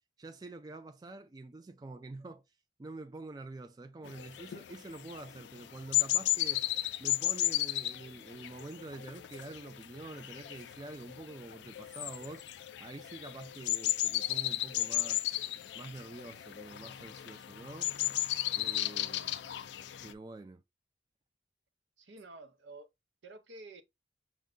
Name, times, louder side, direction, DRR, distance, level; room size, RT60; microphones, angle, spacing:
voice 1, 0.2-2.4 2.8-6.7 7.0-12.4 12.8-15.2 15.7-17.9 18.5-19.4 20.0-20.6, right 2 dB, 20° right, 0.3 m, -47 dB
sound 1, 4.0-20.1, left 14 dB, 70° left, 0.4 m, -35 dB
voice 2, 22.0-22.9 23.2-23.8, right 2 dB, 75° right, 0.7 m, -50 dB
6.2 x 2.2 x 3.7 m
head